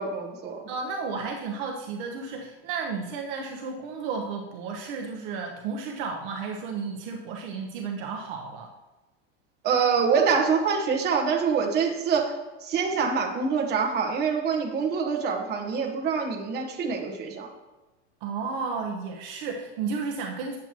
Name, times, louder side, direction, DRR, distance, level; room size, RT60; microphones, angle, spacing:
voice 1, 0.0-0.6 9.6-12.3 12.6-17.5, right 5 dB, 30° right, 1 dB, 1.1 m, -25 dB
voice 2, 0.7-8.7 18.2-20.6, right 5 dB, 55° right, 2 dB, 0.9 m, -33 dB
9.0 x 7.5 x 2.9 m, 1.1 s
supercardioid pair, 155°, 33 cm